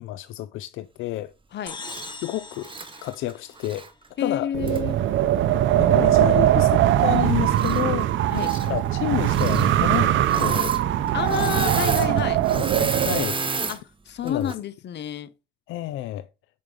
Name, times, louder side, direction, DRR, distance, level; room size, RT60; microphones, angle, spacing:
voice 1, 0.0-1.3 2.2-2.7 3.0-3.9 4.2-4.8 5.8-8.1 8.4-10.8 12.5-13.7 14.2-14.5 15.7-16.3, left 15 dB, 90° left, 0.4 m, -30 dB
sound 1, 1.7-4.2, left 4 dB, 25° left, 1.1 m, -41 dB
Engine / Mechanisms, 1.8-2.1 2.6-3.9 4.7-4.8 7.5-8.0 8.3-8.7 9.3-9.7 10.2-10.8 11.1-13.8 14.3-14.6, right 4 dB, 25° right, 0.9 m, -31 dB
voice 2, 4.2-5.0 8.3-8.5 11.1-12.4 13.7-15.3, left 9 dB, 60° left, 0.8 m, -30 dB
Wind, 4.5-13.2, right 12 dB, 75° right, 0.6 m, -21 dB
6.1 x 5.3 x 4.9 m
cardioid pair, 90°, 20 cm